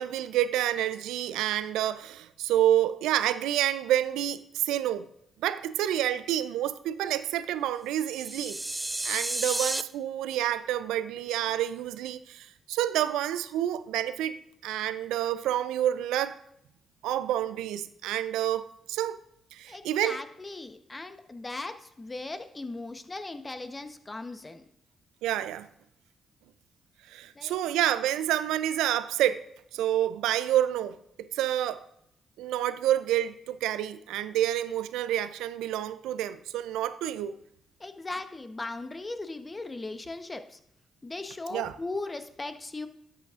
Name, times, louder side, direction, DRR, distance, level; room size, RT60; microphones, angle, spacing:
voice 1, 0.0-5.1 5.4-8.6 9.0-14.4 14.6-16.4 17.0-19.2 19.5-20.2 25.2-25.7 27.1-29.5 29.7-31.0 31.3-31.8 32.4-37.4 41.5-41.7, right 12 dB, 85° right, 0.4 m, -28 dB
sound 1, 8.0-9.8, right 2 dB, 20° right, 0.4 m, -32 dB
voice 2, 19.7-24.6 27.4-27.6 37.8-40.6 41.0-42.9, left 2 dB, 30° left, 0.8 m, -38 dB
12.0 x 8.1 x 2.4 m
supercardioid pair, 50°, 0 cm